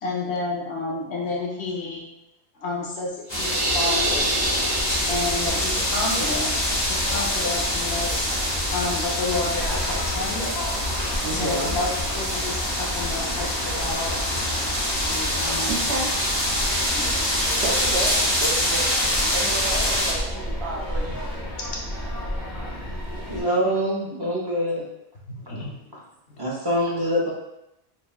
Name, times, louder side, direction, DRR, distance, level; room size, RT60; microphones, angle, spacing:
voice 1, 0.0-2.0 2.6-4.3 5.1-8.3 8.7-10.5 11.3-14.1 15.1-15.8 16.9-17.1 25.3-25.8, left 3 dB, 75° left, -4 dB, 1.1 m, -30 dB
sound 1, 3.3-20.1, left 1 dB, 25° left, 1.0 m, -25 dB
sound 2, 3.3-5.9, right 1 dB, 40° right, 0.3 m, -26 dB
sound 3, 3.6-23.4, left 1 dB, 55° left, 1.3 m, -34 dB
voice 2, 11.2-11.8 15.7-16.1 17.6-21.2, right 3 dB, 75° right, -1 dB, 1.0 m, -31 dB
voice 3, 23.3-24.9 26.4-27.3, equal, 25° right, -4 dB, 0.9 m, -24 dB
4.3 x 3.4 x 2.3 m, 0.85 s
omnidirectional pair, 1.1 m